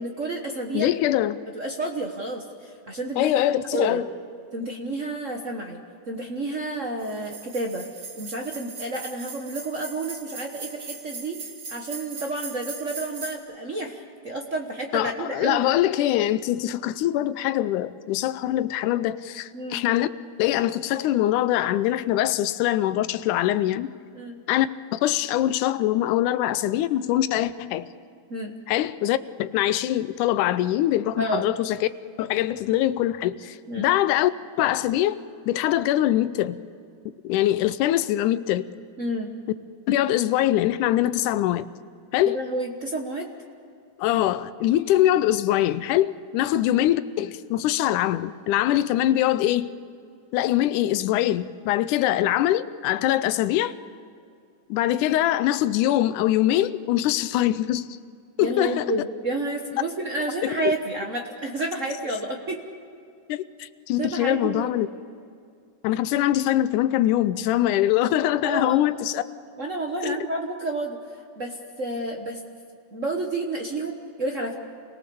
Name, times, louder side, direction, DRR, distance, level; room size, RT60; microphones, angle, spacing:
voice 1, 0.0-0.9 1.5-3.3 3.7-4.0 4.5-5.8 6.1-7.9 8.1-15.7 19.5-19.8 24.1-24.4 28.3-28.5 31.2-31.5 33.7-33.9 39.0-39.3 42.3-43.3 58.4-62.6 64.0-64.7 68.4-68.9 69.6-71.0 71.4-72.4 72.9-74.5, right 2 dB, 60° right, 0.7 m, -30 dB
voice 2, 0.7-1.4 3.2-4.1 14.9-20.1 20.4-23.9 24.5-27.9 28.7-31.9 32.2-34.3 34.6-35.2 35.5-36.6 37.2-38.7 39.9-41.7 42.1-42.4 44.0-49.7 50.3-53.7 54.7-57.9 58.4-58.9 60.4-60.7 63.3-64.9 65.8-69.2 70.0-70.2, left 13 dB, 90° left, 2.2 m, -23 dB
sound 1, 7.0-13.4, right 4 dB, 40° right, 2.5 m, -39 dB
28.0 x 18.5 x 7.0 m
omnidirectional pair, 3.5 m